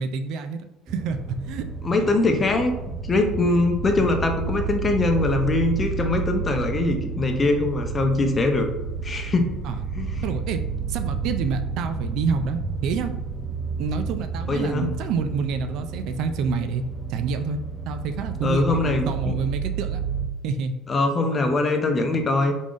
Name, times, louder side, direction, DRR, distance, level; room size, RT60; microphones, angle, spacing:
voice 1, 0.0-1.6 9.6-9.9 10.2-10.6 10.9-13.1 13.8-16.8 17.1-20.0 20.4-20.7, right 5 dB, 65° right, 8 dB, 0.3 m, -28 dB
sound 1, 0.9-20.3, right 5 dB, 20° right, 0.7 m, -31 dB
voice 2, 1.8-2.7 3.1-8.7 9.0-9.6 10.0-10.2 14.5-14.9 18.4-19.3 20.9-22.5, left 2 dB, 30° left, 5 dB, 0.6 m, -22 dB
3.5 x 3.5 x 2.5 m, 0.93 s
hypercardioid pair, 75°, 0 cm